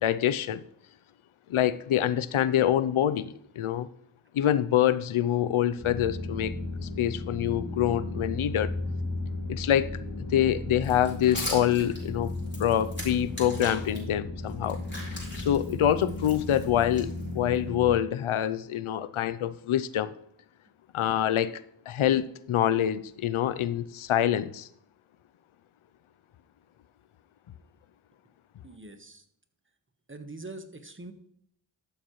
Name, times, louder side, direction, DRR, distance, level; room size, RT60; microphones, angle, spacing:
voice 1, 0.0-0.6 1.5-3.9 4.3-6.5 6.8-8.7 9.5-9.9 10.3-12.3 12.6-14.8 15.4-20.1 20.9-24.7, left 10 dB, 80° left, 0.6 m, -26 dB
sound 1, 5.8-17.9, left 2 dB, 45° left, 4.1 m, -35 dB
sound 2, 10.8-14.0 14.5-17.6, left 1 dB, 20° left, 4.2 m, -40 dB
voice 2, 28.6-29.3 30.1-31.1, right 2 dB, 25° right, 1.3 m, -43 dB
13.0 x 7.3 x 3.1 m
cardioid pair, 45°, 49 cm